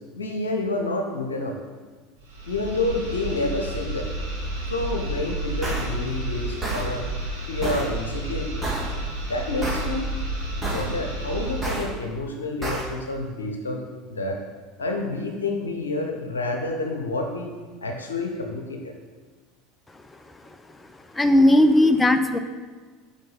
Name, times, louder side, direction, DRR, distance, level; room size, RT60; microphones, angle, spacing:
voice 1, 0.2-1.6 2.5-4.1 4.7-7.0 7.5-8.7 9.2-10.1 10.6-13.8 14.1-14.4 14.8-17.5 17.8-18.9, left 2 dB, 80° left, 2 dB, 0.9 m, -29 dB
sound 1, 2.2-11.9, right 1 dB, 80° right, 1.4 m, -31 dB
sound 2, 5.6-5.8 6.6-6.8 7.6-7.8 8.6-8.8 9.6-9.8 10.6-10.8 11.6-11.8 12.6-12.8, right 2 dB, 15° right, 2.4 m, -28 dB
voice 2, 21.1-22.4, left 1 dB, 15° left, 9 dB, 0.6 m, -17 dB
6.6 x 5.6 x 5.7 m, 1.4 s
figure-of-eight pair, 75°, 0 cm